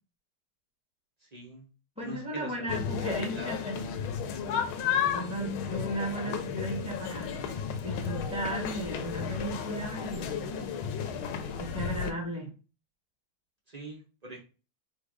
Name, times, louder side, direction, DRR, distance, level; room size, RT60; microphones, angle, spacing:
voice 1, 1.3-1.7 2.0-2.8 3.1-3.5 13.7-14.4, right 2 dB, 90° right, -2 dB, 0.3 m, -42 dB
voice 2, 2.0-3.9 5.1-7.3 7.8-10.6 11.6-12.5, right 1 dB, 5° right, -2 dB, 1.1 m, -35 dB
sound 1, 2.7-12.1, left 7 dB, 75° left, 1.5 m, -33 dB
4.4 x 2.4 x 4.7 m, 0.34 s
omnidirectional pair, 2.4 m